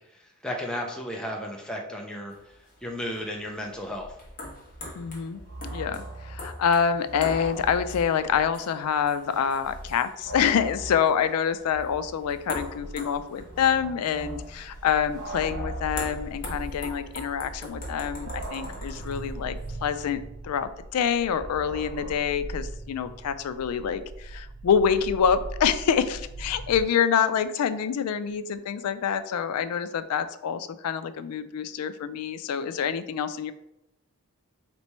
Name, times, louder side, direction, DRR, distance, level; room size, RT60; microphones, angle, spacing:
voice 1, 0.1-2.4 2.8-4.1, equal, 5° left, 0 dB, 0.4 m, -34 dB
sound 1, 2.3-20.1, left 1 dB, 40° left, 1.1 m, -43 dB
sound 2, 3.8-8.6 8.9-9.0 9.5-22.2, right 1 dB, 55° right, 0.8 m, -41 dB
voice 2, 5.0-5.4 5.7-33.5, left 7 dB, 90° left, 12 dB, 0.4 m, -26 dB
sound 3, 14.5-26.8, right 2 dB, 90° right, 0.5 m, -40 dB
3.3 x 3.0 x 4.2 m, 0.88 s
head